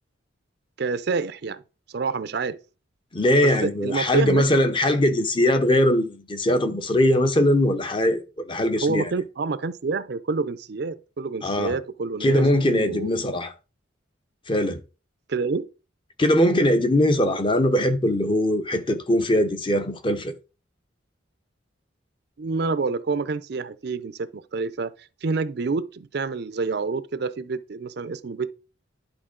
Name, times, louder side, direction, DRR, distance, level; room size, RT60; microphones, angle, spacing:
voice 1, 0.8-1.6 1.9-2.6 3.4-4.4 8.8-13.1 15.3-15.7 22.4-28.5, right 4 dB, 55° right, 0.4 m, -28 dB
voice 2, 3.1-9.1 11.4-11.8 12.2-13.5 14.5-14.8 16.2-20.3, left 1 dB, 25° left, 0.7 m, -21 dB
11.0 x 4.3 x 3.8 m
head